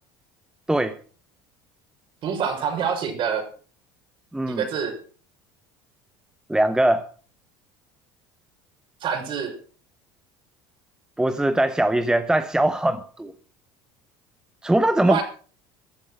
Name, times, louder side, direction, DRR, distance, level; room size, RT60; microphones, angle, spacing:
voice 1, 2.2-3.4 4.5-5.0 9.0-9.5 12.9-13.0 15.0-15.2, right 7 dB, 50° right, 6.3 m, -26 dB
voice 2, 4.3-4.6 6.5-7.0 11.2-13.3 14.6-15.2, right 1 dB, 5° right, 1.0 m, -21 dB
14.5 x 11.0 x 6.4 m
supercardioid pair, 95°, 11 cm